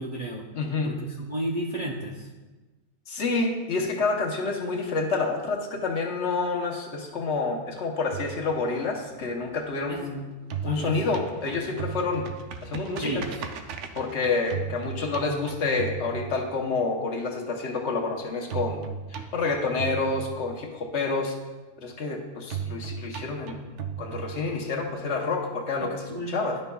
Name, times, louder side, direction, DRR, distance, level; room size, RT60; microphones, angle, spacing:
voice 1, 0.0-0.4 0.8-2.3 9.9-10.0 10.6-11.0 13.0-13.3 25.8-26.5, right 1 dB, 45° right, -4 dB, 0.5 m, -32 dB
voice 2, 0.5-1.0 3.1-10.3 10.6-12.4 12.6-13.2 13.9-18.8 19.1-21.3 21.8-23.7 24.0-26.6, left 3 dB, 60° left, 0 dB, 1.2 m, -28 dB
sound 1, 8.1-10.1 10.4-16.8 18.5-20.8 22.5-24.8, right 7 dB, 70° right, 0.9 m, -36 dB
11.5 x 5.4 x 2.3 m, 1.2 s
omnidirectional pair, 1.4 m